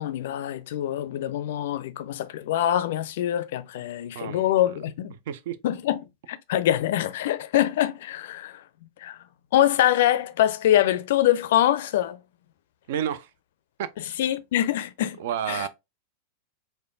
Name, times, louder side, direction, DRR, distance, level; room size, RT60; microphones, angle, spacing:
voice 1, 0.0-5.1 5.6-6.0 6.3-8.6 9.0-9.2 9.5-12.2 14.2-15.2 15.5-15.7, left 12 dB, 55° left, 0.4 m, -24 dB
voice 2, 4.1-4.8 5.1-5.6 12.9-13.3 13.8-13.9 15.2-15.7, right 9 dB, 55° right, 0.4 m, -31 dB
4.8 x 2.2 x 2.5 m
figure-of-eight pair, 90°, 0 cm